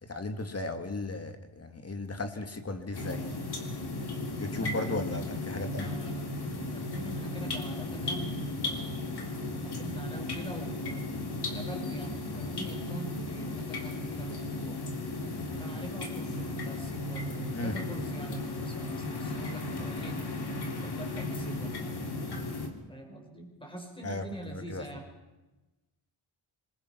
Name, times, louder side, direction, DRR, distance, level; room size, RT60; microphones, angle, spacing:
voice 1, 0.0-3.3 4.4-5.9 17.5-17.8 24.0-24.8, left 2 dB, 30° left, 7 dB, 2.1 m, -36 dB
sound 1, 2.9-22.7, left 2 dB, 50° left, 3.3 m, -35 dB
voice 2, 4.5-5.3 5.8-6.2 6.7-9.2 9.6-11.0 11.4-14.8 15.5-20.2 20.8-22.1 22.9-25.1, right 1 dB, 10° left, 2 dB, 5.3 m, -44 dB
26.0 x 22.0 x 5.8 m, 1.1 s
wide cardioid pair, 150°, 50 cm